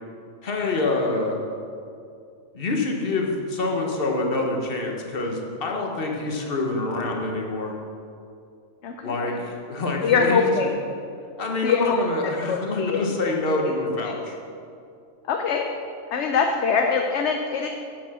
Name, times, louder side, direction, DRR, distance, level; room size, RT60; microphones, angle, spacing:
voice 1, 0.4-1.4 2.5-7.7 9.0-10.5 11.4-14.4, left 2 dB, 45° left, 1 dB, 1.4 m, -26 dB
voice 2, 8.8-9.4 10.0-10.8 11.6-13.7 14.0-14.2 15.2-15.7 16.1-17.7, left 5 dB, 65° left, 3 dB, 0.9 m, -24 dB
8.0 x 7.6 x 6.2 m, 2.4 s
omnidirectional pair, 1.4 m